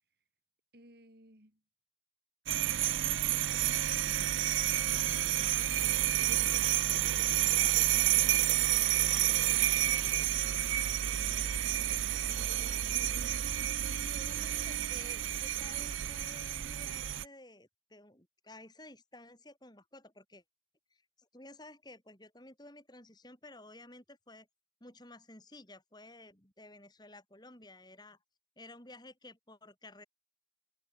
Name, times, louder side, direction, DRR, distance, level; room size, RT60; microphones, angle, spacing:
voice 1, 0.7-1.6 9.3-13.4, right 1 dB, 55° right, 7.3 m, -58 dB
sound 1, 2.5-17.2, right 13 dB, 90° right, 0.5 m, -30 dB
voice 2, 9.9-10.3 13.9-20.4 20.9-24.5 24.8-28.2 28.6-30.0, left 2 dB, 20° left, 5.6 m, -53 dB
head